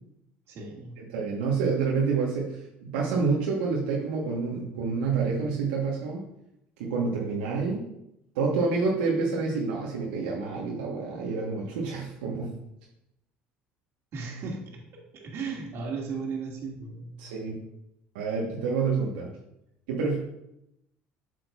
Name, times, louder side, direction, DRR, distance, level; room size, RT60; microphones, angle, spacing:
voice 1, 0.5-0.9 14.1-17.2, right 4 dB, 55° right, 0 dB, 1.9 m, -36 dB
voice 2, 1.1-6.3 6.8-7.8 8.3-12.5 17.2-17.6 18.1-19.3 19.9-20.2, right 4 dB, 85° right, -3 dB, 1.1 m, -28 dB
8.0 x 6.3 x 2.3 m, 0.82 s
supercardioid pair, 80°, 5 cm